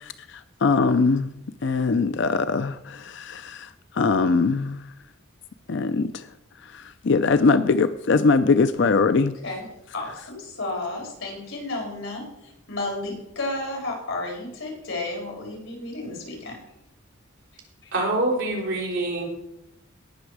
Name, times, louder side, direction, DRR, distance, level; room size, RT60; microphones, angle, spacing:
voice 1, 0.6-1.3 1.6-2.7 3.2-3.5 4.0-4.8 5.7-6.1 7.1-9.3, left 4 dB, 60° left, 11 dB, 0.5 m, -20 dB
voice 2, 9.9-12.2 12.7-16.6, left 2 dB, 80° left, 1 dB, 4.2 m, -32 dB
voice 3, 17.9-19.2, right 2 dB, 60° right, -2 dB, 4.2 m, -25 dB
18.0 x 6.1 x 4.8 m, 0.84 s
head